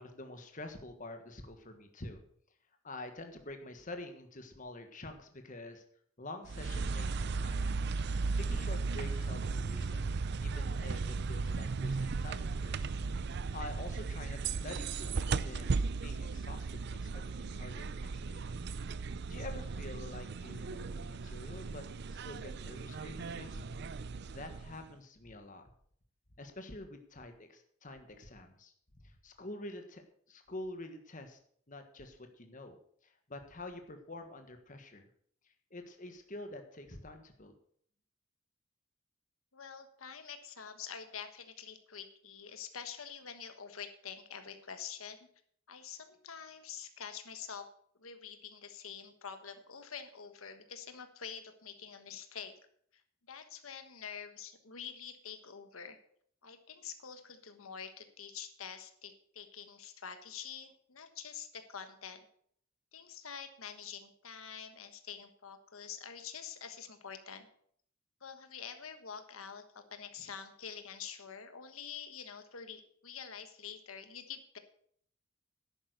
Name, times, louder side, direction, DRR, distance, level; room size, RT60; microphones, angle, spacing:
voice 1, 0.0-2.2 2.8-5.8 6.2-7.7 8.3-10.0 10.4-12.9 13.3-18.4 19.3-21.8 22.1-23.6 24.3-25.6 26.4-28.7 29.0-31.4 31.7-32.8 33.0-35.1 35.7-37.5, left 2 dB, 40° left, 6 dB, 1.5 m, -47 dB
sound 1, 6.5-24.9, right 4 dB, 55° right, 0.5 m, -36 dB
voice 2, 39.5-45.3 45.7-47.7 48.0-52.5 53.3-56.0 56.4-62.2 62.9-67.5 68.2-74.6, left 7 dB, 90° left, 8 dB, 1.4 m, -46 dB
11.0 x 8.8 x 6.6 m, 0.63 s
head